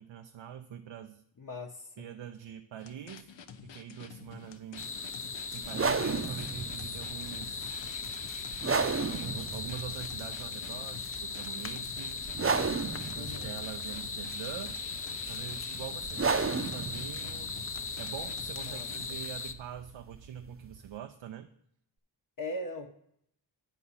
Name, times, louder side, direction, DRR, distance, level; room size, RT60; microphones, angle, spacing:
voice 1, 0.0-1.2 2.0-3.3 3.6-4.9 5.5-8.0 9.1-12.3 13.1-14.8 15.3-17.6 18.0-21.5, right 10 dB, 85° right, 0.6 m, -44 dB
voice 2, 1.4-1.9 13.1-13.6 18.6-18.9 22.4-22.9, left 1 dB, 45° left, 1.0 m, -39 dB
sound 1, 2.8-19.1, left 7 dB, 85° left, 0.7 m, -49 dB
sound 2, 4.8-19.5, left 4 dB, 30° left, 0.7 m, -38 dB
sound 3, 5.6-21.0, right 4 dB, 30° right, 0.6 m, -35 dB
8.3 x 4.1 x 7.0 m
cardioid pair, 40°, 44 cm